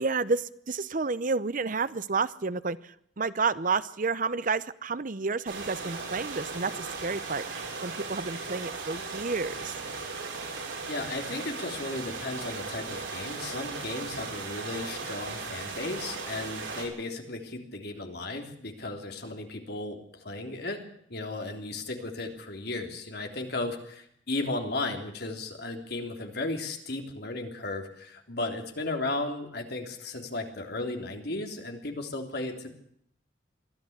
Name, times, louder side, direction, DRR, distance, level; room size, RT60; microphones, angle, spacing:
voice 1, 0.0-9.7, right 4 dB, 45° right, 16 dB, 0.8 m, -30 dB
sound 1, 5.5-16.9, right 4 dB, 90° right, 7.0 m, -37 dB
voice 2, 10.9-20.8 21.1-32.7, left 2 dB, 60° left, 4 dB, 3.4 m, -35 dB
23.0 x 14.0 x 8.1 m, 0.69 s
head